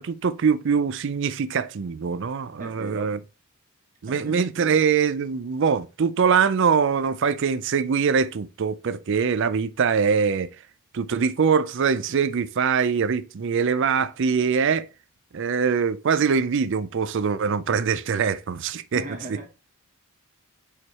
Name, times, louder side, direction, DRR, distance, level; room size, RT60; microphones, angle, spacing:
voice 1, 0.0-3.2 4.0-10.5 10.9-14.9 15.3-19.5, right 6 dB, 55° right, 0.4 m, -23 dB
voice 2, 2.6-3.2 4.1-4.8 18.9-19.5, right 1 dB, 35° right, 1.4 m, -38 dB
4.9 x 4.6 x 4.1 m
head